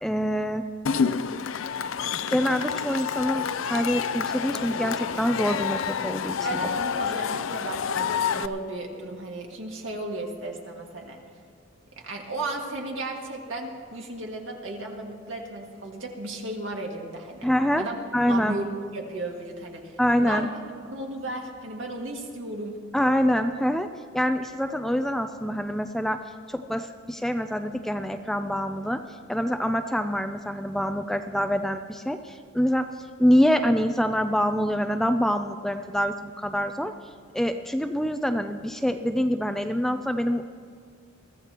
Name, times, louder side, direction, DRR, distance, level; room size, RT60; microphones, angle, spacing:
voice 1, 0.0-0.7 2.3-6.4 6.6-6.7 17.4-17.8 18.1-18.6 20.0-20.5 22.9-23.9 24.1-26.2 26.5-29.0 29.3-32.9 33.2-36.9 37.3-40.5, equal, ahead, 7 dB, 0.4 m, -25 dB
Cheering / Crowd, 0.9-8.5, left 6 dB, 70° left, 0.4 m, -28 dB
voice 2, 6.4-11.2 12.0-17.5 17.8-18.0 18.3-20.5 20.8-22.8, right 2 dB, 70° right, 0 dB, 2.0 m, -35 dB
22.0 x 14.5 x 3.0 m, 2.1 s
head